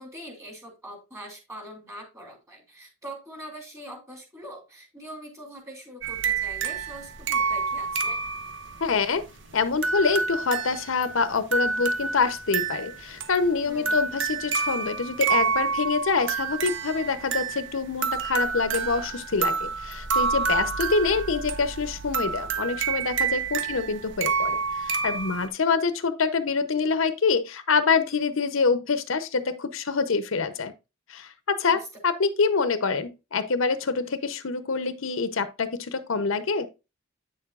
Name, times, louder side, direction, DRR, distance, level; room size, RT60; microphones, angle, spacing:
voice 1, 0.0-8.2 13.7-14.0 23.6-23.7 31.7-31.9, right 1 dB, 15° right, 2.7 m, -43 dB
sound 1, 6.0-25.5, right 5 dB, 60° right, 1.0 m, -28 dB
voice 2, 8.8-9.2 9.5-30.7 31.1-36.7, left 4 dB, 75° left, 0.7 m, -26 dB
8.9 x 6.8 x 2.4 m
head